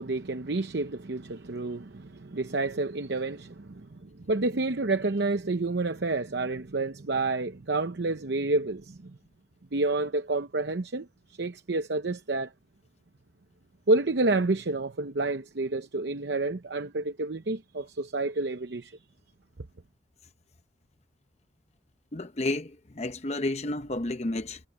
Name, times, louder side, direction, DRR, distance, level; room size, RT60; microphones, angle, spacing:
voice 1, 0.0-9.2 9.7-12.5 13.9-19.0, right 2 dB, 60° right, 0.8 m, -29 dB
voice 2, 22.1-24.6, left 2 dB, 35° left, 0.8 m, -31 dB
head